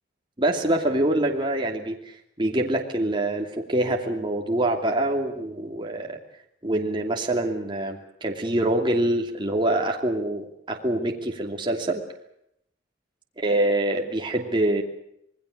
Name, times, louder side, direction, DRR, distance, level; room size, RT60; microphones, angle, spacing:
voice 1, 0.4-2.0 2.4-6.2 6.6-12.0 13.4-14.8, right 1 dB, 25° right, 1 dB, 2.8 m, -25 dB
27.0 x 21.0 x 6.6 m, 0.75 s
head